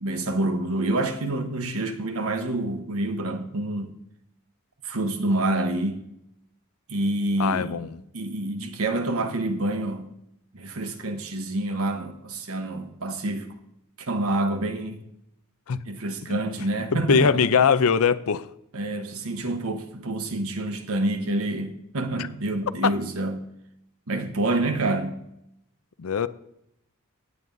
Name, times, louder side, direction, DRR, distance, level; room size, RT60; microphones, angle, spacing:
voice 1, 0.0-4.0 4.8-6.0 6.9-7.8 8.1-10.1 10.5-13.5 14.0-15.0 15.8-17.5 18.7-23.5 24.1-25.2, right 2 dB, 70° right, 1.1 m, -27 dB
voice 2, 7.4-7.9 15.7-15.8 16.2-16.4 16.9-18.5 26.0-26.3, left 6 dB, 75° left, 0.5 m, -21 dB
16.5 x 9.2 x 2.7 m
head